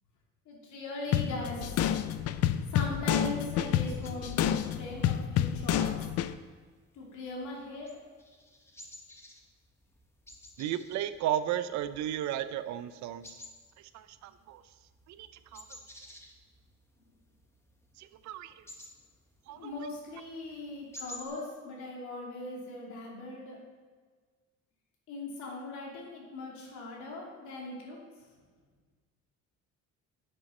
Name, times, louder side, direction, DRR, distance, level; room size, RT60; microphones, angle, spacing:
voice 1, 0.4-2.0 2.7-6.1 6.9-8.0 19.5-23.6 25.1-28.3, left 2 dB, 80° left, -2 dB, 2.7 m, -40 dB
sound 1, 1.1-6.3, left 10 dB, 55° left, 0.5 m, -29 dB
sound 2, 3.9-21.3, left 1 dB, 10° left, 1.0 m, -54 dB
voice 2, 10.6-13.4 13.8-14.6 15.1-15.8 18.0-18.6 19.5-19.7, right 11 dB, 70° right, 13 dB, 0.6 m, -35 dB
10.0 x 6.7 x 4.3 m, 1.5 s
cardioid pair, 140°, 29 cm